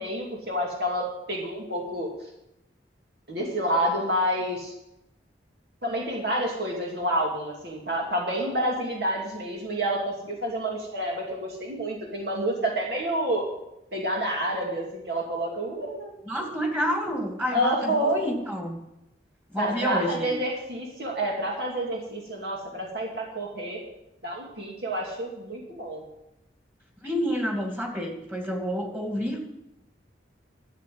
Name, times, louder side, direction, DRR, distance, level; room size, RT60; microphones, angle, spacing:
voice 1, 0.0-2.1 3.3-4.7 5.8-13.4 13.9-16.2 17.5-18.2 19.6-23.8 24.2-26.0, right 1 dB, 60° right, -2 dB, 2.6 m, -28 dB
voice 2, 16.3-18.8 19.5-20.3 27.0-29.5, equal, 10° right, 1 dB, 2.4 m, -29 dB
13.5 x 8.1 x 7.9 m, 0.86 s
head